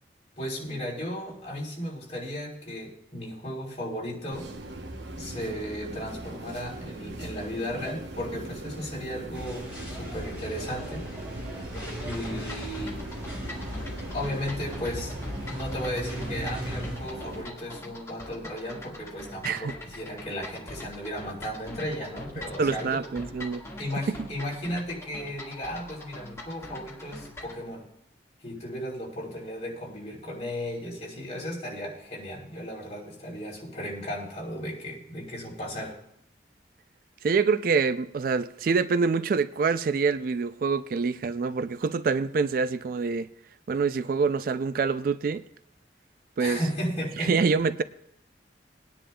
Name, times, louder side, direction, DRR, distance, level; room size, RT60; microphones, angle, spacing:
voice 1, 0.4-4.5 5.1-9.7 9.9-11.1 12.0-13.0 14.1-15.1 15.5-23.0 23.8-27.9 28.4-36.0 46.4-47.3, equal, 40° left, 3.6 m, -35 dB
sound 1, 4.3-17.4, right 2 dB, 75° right, 0.9 m, -40 dB
sound 2, 9.3-17.0, equal, 10° right, 5.7 m, -38 dB
sound 3, 11.8-27.6, left 1 dB, 15° left, 1.7 m, -43 dB
voice 2, 22.6-23.6 24.1-24.2 37.2-43.3 43.7-45.4 46.4-46.6 47.2-47.8, right 5 dB, 50° right, 0.3 m, -26 dB
22.0 x 10.0 x 2.3 m
head